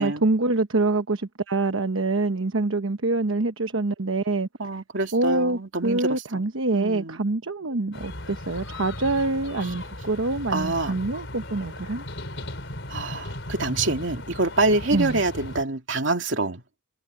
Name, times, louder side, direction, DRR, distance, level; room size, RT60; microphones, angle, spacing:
voice 1, 0.0-4.8 5.1-12.0 14.9-15.2, right 2 dB, 80° right, 1.1 m, -25 dB
voice 2, 4.6-6.4 6.7-7.2 10.5-11.0 12.9-16.6, right 2 dB, 65° right, 2.8 m, -26 dB
sound 1, 7.9-15.6, left 1 dB, 60° left, 5.1 m, -37 dB
head